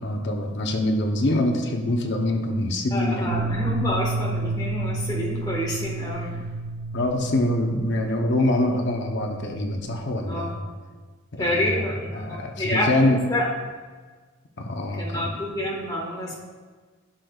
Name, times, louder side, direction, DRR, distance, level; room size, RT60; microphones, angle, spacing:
voice 1, 0.0-3.4 6.9-10.6 11.3-11.8 12.1-13.2 14.6-15.3, left 1 dB, 55° left, 3 dB, 0.7 m, -24 dB
voice 2, 2.9-6.4 10.3-10.6 11.4-13.5 15.0-16.3, left 1 dB, 20° left, -4 dB, 1.5 m, -28 dB
sound 1, 3.3-10.1, right 2 dB, 90° right, 0.4 m, -31 dB
11.5 x 6.5 x 2.4 m, 1.4 s
head